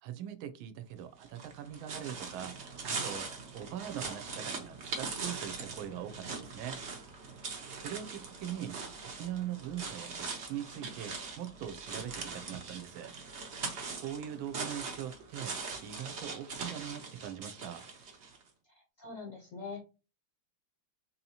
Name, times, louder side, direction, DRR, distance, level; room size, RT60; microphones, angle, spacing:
voice 1, 0.0-2.5 2.8-6.8 7.7-8.8 9.0-13.1 14.0-17.9, right 10 dB, 80° right, 10 dB, 1.4 m, -42 dB
sound 1, 1.2-18.4, right 4 dB, 55° right, 0.7 m, -41 dB
voice 2, 19.0-19.8, left 4 dB, 65° left, 1 dB, 0.8 m, -42 dB
4.1 x 2.8 x 2.8 m, 0.31 s
omnidirectional pair, 2.3 m